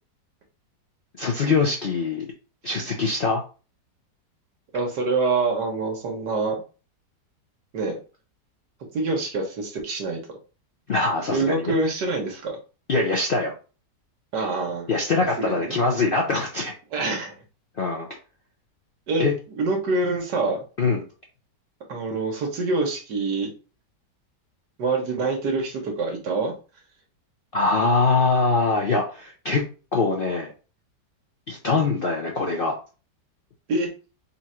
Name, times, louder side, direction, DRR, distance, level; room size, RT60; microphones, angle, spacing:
voice 1, 1.2-2.3 2.6-3.4 10.9-11.7 12.9-13.5 14.9-16.7 17.8-18.1 19.2-19.3 20.8-21.0 27.5-30.5 31.5-32.7, left 3 dB, 55° left, 0 dB, 0.6 m, -23 dB
voice 2, 4.7-6.6 7.7-8.0 8.9-10.2 11.3-12.6 14.3-14.9 15.5-15.8 16.9-17.4 19.1-20.6 21.9-23.5 24.8-26.5 33.7-33.9, right 3 dB, 75° right, 2 dB, 1.8 m, -25 dB
4.0 x 2.5 x 4.3 m, 0.34 s
omnidirectional pair, 1.8 m